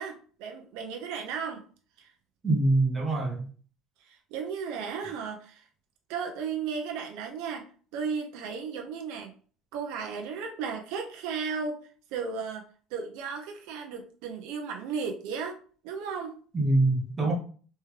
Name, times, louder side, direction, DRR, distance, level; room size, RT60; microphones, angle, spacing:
voice 1, 0.0-1.6 2.0-2.1 4.0-5.6 6.1-7.6 7.9-9.3 9.7-11.8 12.1-15.6 15.8-16.4, right 6 dB, 70° right, 3 dB, 0.7 m, -35 dB
voice 2, 2.4-3.4 16.5-17.3, right 2 dB, 15° right, -1 dB, 0.9 m, -24 dB
3.5 x 3.2 x 3.2 m, 0.43 s
cardioid pair, 170°, 0 cm